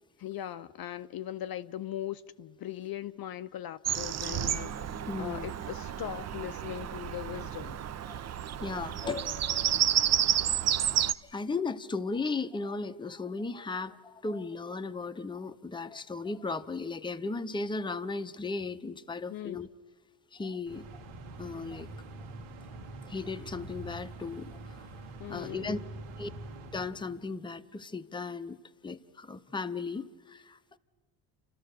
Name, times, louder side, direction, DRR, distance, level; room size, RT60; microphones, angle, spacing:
voice 1, 0.2-7.8 10.6-10.8 19.3-19.6 25.2-25.8, left 12 dB, 50° left, 0.6 m, -40 dB
Bird vocalization bird call bird song, 3.8-11.1, right 10 dB, 35° right, 0.5 m, -30 dB
Mallet percussion, 4.5-11.9, equal, 15° right, 1.1 m, -55 dB
voice 2, 5.1-5.5 8.1-10.1 10.6-19.7 20.3-21.0 21.4-21.9 23.0-24.9 25.3-25.8 26.2-26.3 26.7-28.6 28.8-30.6, left 3 dB, 10° left, 0.7 m, -36 dB
sound 1, 20.7-27.5, right 2 dB, 75° right, 1.8 m, -45 dB
29.5 x 13.5 x 6.6 m
cardioid pair, 95°, 48 cm